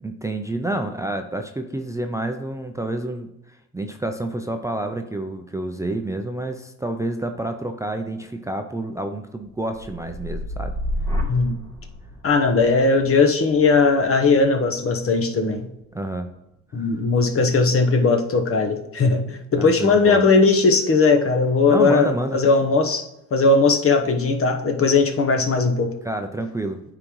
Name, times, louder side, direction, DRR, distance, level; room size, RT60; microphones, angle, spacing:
voice 1, 0.0-10.7 15.9-16.3 16.8-16.9 19.6-20.2 21.7-22.4 26.0-26.8, right 1 dB, 10° right, 5 dB, 0.5 m, -29 dB
sound 1, 9.5-17.5 17.9-18.4, left 1 dB, 10° left, 2.4 m, -33 dB
voice 2, 11.2-11.5 12.2-15.7 16.7-25.9, left 4 dB, 45° left, 5 dB, 1.0 m, -18 dB
9.5 x 3.9 x 3.1 m, 0.88 s
cardioid pair, 80°, 32 cm